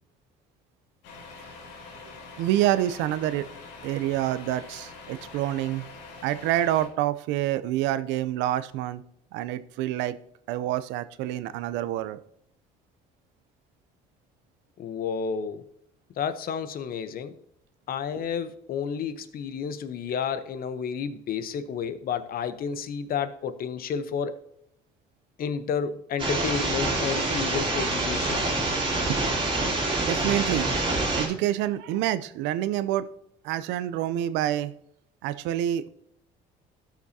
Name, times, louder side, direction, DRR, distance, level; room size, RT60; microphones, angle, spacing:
Truck, 1.0-6.9, left 4 dB, 85° left, 2.1 m, -44 dB
voice 1, 2.1-3.5 3.8-5.8 6.2-9.0 9.3-10.2 10.5-12.2 18.2-18.3 28.9-30.7 31.2-33.1 33.4-34.7 35.2-35.9, right 13 dB, 85° right, 14 dB, 0.5 m, -27 dB
voice 2, 14.8-15.6 16.2-17.3 17.9-24.4 25.4-28.4, left 7 dB, 55° left, 12 dB, 0.8 m, -31 dB
sound 1, 26.2-31.3, right 2 dB, 25° right, 2.6 m, -26 dB
13.0 x 5.9 x 2.7 m, 0.73 s
supercardioid pair, 90°, 18 cm